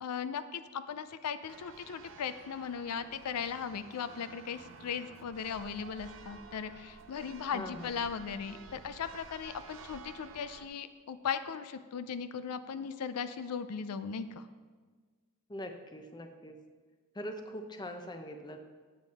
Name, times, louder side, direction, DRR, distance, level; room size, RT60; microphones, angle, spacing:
voice 1, 0.0-14.4, left 6 dB, 85° left, 11 dB, 0.4 m, -38 dB
Church bell, 1.5-10.7, right 5 dB, 60° right, 0.5 m, -52 dB
voice 2, 7.5-8.0 15.5-16.6 17.1-18.6, equal, 20° left, 6 dB, 0.6 m, -42 dB
8.3 x 8.0 x 4.2 m, 1.5 s
head